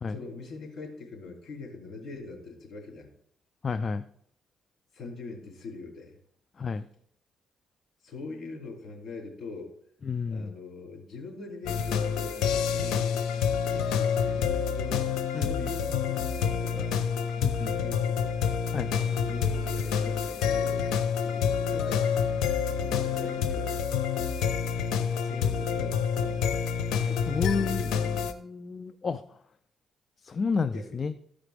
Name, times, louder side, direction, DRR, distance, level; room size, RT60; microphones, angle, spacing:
voice 1, 0.1-3.1 4.9-6.2 8.0-9.7 10.3-13.3 13.7-17.0 17.6-18.2 18.6-22.3 22.6-23.9 24.5-26.6 27.0-28.4 30.7-31.1, left 3 dB, 55° left, 0 dB, 2.9 m, -43 dB
voice 2, 3.6-4.0 6.6-6.9 10.0-10.5 15.3-15.7 17.4-17.7 18.7-18.9 27.3-29.4 30.2-31.1, left 5 dB, 40° left, 11 dB, 0.4 m, -31 dB
sound 1, 11.6-28.3, left 7 dB, 90° left, 0.7 m, -28 dB
14.0 x 5.0 x 3.4 m, 0.67 s
cardioid pair, 90°, 0 cm